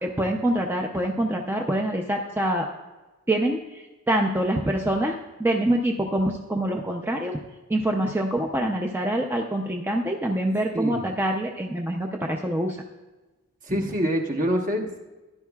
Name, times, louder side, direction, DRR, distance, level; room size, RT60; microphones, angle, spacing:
voice 1, 0.0-2.7 3.3-7.4 7.7-12.8 13.7-13.8, right 1 dB, 10° right, 1 dB, 0.6 m, -25 dB
voice 2, 10.7-11.1 13.7-15.0, equal, 40° right, 2 dB, 1.3 m, -25 dB
15.0 x 11.0 x 2.4 m, 1.2 s
head